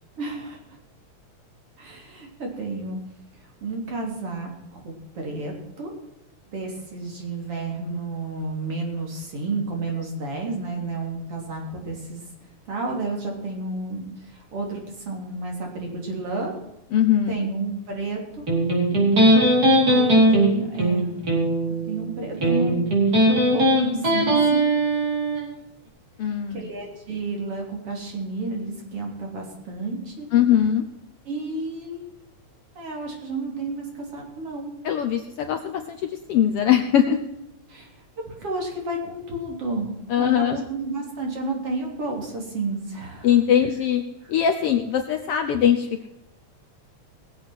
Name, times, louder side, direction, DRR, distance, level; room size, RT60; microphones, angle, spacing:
voice 1, 0.2-0.6 1.8-3.0 3.6-5.9 6.5-12.2 12.7-16.5 17.3-18.4 19.8-21.1 21.9-22.8 23.1-24.6 26.5-30.3 31.3-32.1 32.8-34.7 37.7-39.9 40.2-43.4, right 3 dB, 50° right, 0 dB, 4.1 m, -31 dB
voice 2, 16.9-17.4 26.2-26.7 30.3-30.8 34.8-37.2 40.1-40.6 43.2-44.0 44.3-46.1, left 9 dB, 65° left, 7 dB, 1.6 m, -21 dB
Electric guitar, 18.5-25.4, right 1 dB, 30° right, 4.8 m, -19 dB
20.0 x 7.8 x 6.1 m, 0.88 s
omnidirectional pair, 3.3 m